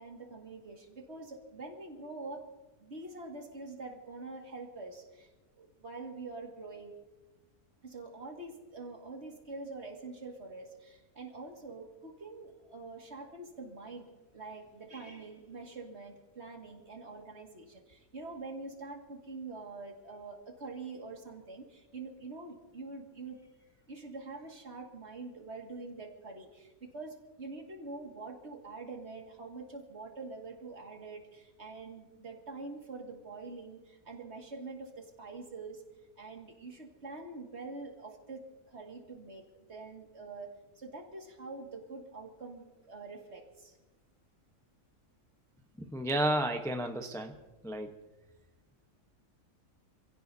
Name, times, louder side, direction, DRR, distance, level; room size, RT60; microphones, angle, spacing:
voice 1, 0.0-2.5 2.8-5.3 5.6-6.9 7.8-14.1 14.3-23.5 23.9-35.8 36.2-43.8, right 3 dB, 50° right, 1 dB, 2.3 m, -45 dB
voice 2, 45.8-47.4 47.6-48.0, right 1 dB, 5° left, 4 dB, 0.7 m, -32 dB
27.5 x 16.5 x 2.7 m, 1.1 s
omnidirectional pair, 1.5 m